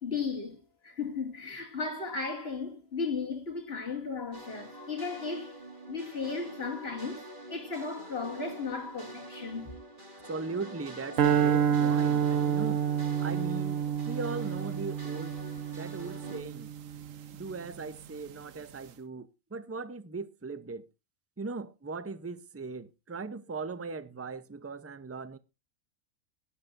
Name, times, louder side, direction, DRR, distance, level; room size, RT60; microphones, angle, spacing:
voice 1, 0.0-5.6 5.9-7.2 7.5-9.7, left 4 dB, 45° left, 2.9 m, -35 dB
sound 1, 4.3-16.4, right 2 dB, 35° right, 2.6 m, -46 dB
voice 2, 10.3-12.8 13.2-15.4 15.7-16.7 17.3-20.9 21.4-25.4, right 3 dB, 15° right, 0.5 m, -39 dB
sound 2, 11.2-17.5, right 8 dB, 70° right, 1.2 m, -29 dB
17.5 x 11.5 x 2.6 m
omnidirectional pair, 1.4 m